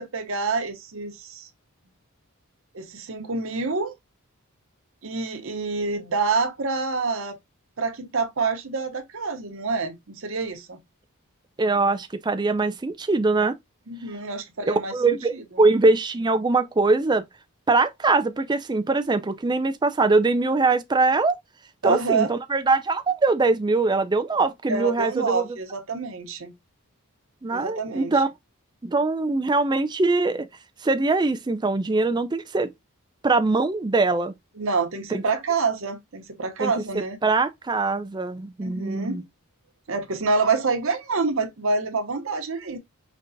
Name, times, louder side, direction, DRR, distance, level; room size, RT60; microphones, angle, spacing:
voice 1, 0.0-1.5 2.7-3.9 5.0-7.4 7.8-10.8 13.9-14.9 15.3-15.4 21.8-22.3 24.7-26.5 27.5-28.2 34.6-37.2 38.6-39.2 39.9-42.8, right 4 dB, 60° right, 0.8 m, -27 dB
voice 2, 11.6-13.5 14.6-17.3 17.7-21.4 21.8-25.5 27.4-28.3 28.8-30.5 30.8-32.7 33.2-34.3 35.1-35.2 36.6-36.7 37.2-39.2, right 3 dB, 20° right, 0.4 m, -22 dB
5.2 x 3.3 x 2.6 m
head